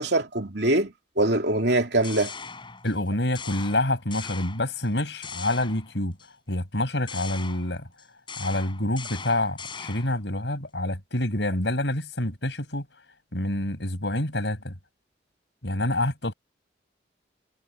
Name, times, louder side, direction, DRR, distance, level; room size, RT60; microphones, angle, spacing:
voice 1, 0.0-2.3, right 2 dB, 65° right, 2.8 m, -23 dB
sound 1, 1.7-3.0 3.3-4.9 5.2-6.3 7.1-10.2, left 5 dB, 25° left, 5.3 m, -40 dB
voice 2, 2.8-6.2 6.5-7.9 8.4-12.9 13.3-14.7 15.6-16.3, left 1 dB, 70° left, 5.9 m, -27 dB
head